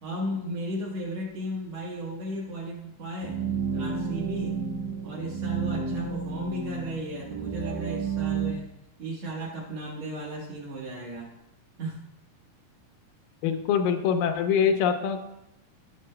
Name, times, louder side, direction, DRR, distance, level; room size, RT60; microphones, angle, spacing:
voice 1, 0.0-3.4 3.7-4.6 5.0-8.7 9.0-11.3 11.8-12.0, right 1 dB, 55° right, -4 dB, 2.4 m, -35 dB
sound 1, 3.2-8.5, right 5 dB, 75° right, 1.8 m, -31 dB
voice 2, 13.4-15.3, left 7 dB, 80° left, 6 dB, 2.2 m, -24 dB
15.5 x 6.4 x 2.2 m, 0.84 s
omnidirectional pair, 4.1 m